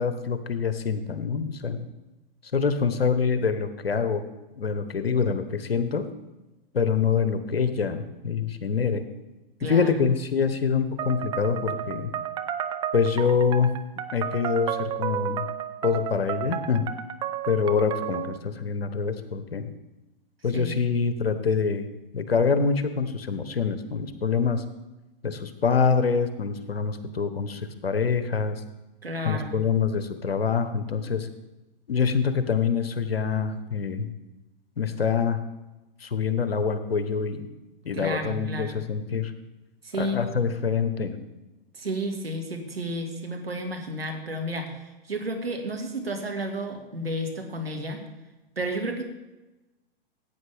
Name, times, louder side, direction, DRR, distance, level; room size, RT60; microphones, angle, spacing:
voice 1, 0.0-1.8 2.5-4.2 4.6-6.0 6.7-9.0 9.6-12.1 12.9-13.7 14.1-15.5 15.8-16.8 17.5-19.7 20.4-21.9 22.1-24.6 25.2-28.6 29.2-31.3 31.9-34.1 34.8-35.4 36.0-37.5 37.8-39.3 40.0-41.1, left 6 dB, 85° left, 10 dB, 1.1 m, -25 dB
voice 2, 9.6-10.1 20.5-20.8 29.0-29.6 37.9-38.8 39.8-40.2 41.7-48.0 48.5-49.0, right 1 dB, 90° right, 4 dB, 1.8 m, -32 dB
sound 1, 11.0-18.4, right 10 dB, 15° right, 0.4 m, -32 dB
15.0 x 8.6 x 3.5 m, 1.1 s
figure-of-eight pair, 105°, 29 cm